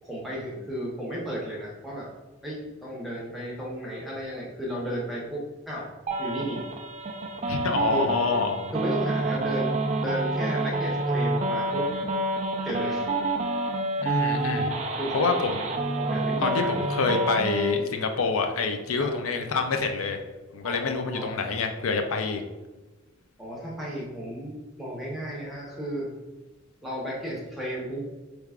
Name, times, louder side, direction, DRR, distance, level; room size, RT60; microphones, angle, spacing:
voice 1, 0.0-2.1 2.4-5.9 6.2-6.6 7.9-8.1 8.7-9.7 10.0-11.9 12.6-13.1 15.0-15.4 16.0-16.7 18.9-19.2 20.6-21.3 23.4-26.1 26.8-28.0, equal, ahead, -6 dB, 0.9 m, -33 dB
sound 1, 6.1-17.7, right 2 dB, 30° right, 0.4 m, -28 dB
voice 2, 7.5-8.7 14.0-14.7 15.1-15.6 16.4-20.2 20.5-22.4, left 4 dB, 90° left, 5 dB, 0.5 m, -27 dB
4.6 x 3.3 x 2.4 m, 1.2 s
head